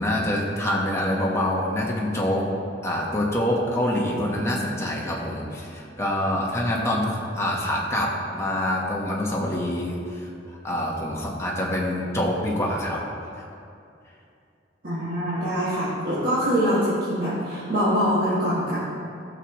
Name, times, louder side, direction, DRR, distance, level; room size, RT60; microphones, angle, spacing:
voice 1, 0.0-2.5 2.8-10.3 10.6-13.1 13.4-13.5, left 1 dB, 15° left, -3 dB, 1.3 m, -26 dB
voice 2, 14.8-18.8, equal, 50° right, -12 dB, 2.0 m, -24 dB
13.5 x 6.4 x 3.1 m, 2.5 s
head